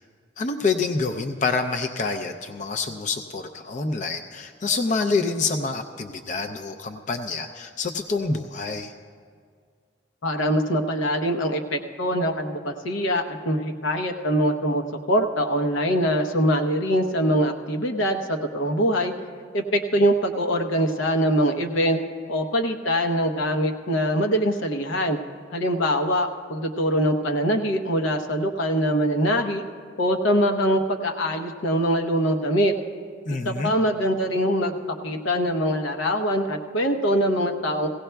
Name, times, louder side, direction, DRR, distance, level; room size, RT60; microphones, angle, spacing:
voice 1, 0.4-8.9 33.3-33.7, left 4 dB, 40° left, 6 dB, 0.4 m, -27 dB
voice 2, 10.2-19.1 19.5-22.0 22.3-25.2 25.5-29.6 30.0-32.7 33.3-34.7 35.0-37.9, equal, 85° left, 5 dB, 0.9 m, -23 dB
17.5 x 16.5 x 2.3 m, 2.1 s
head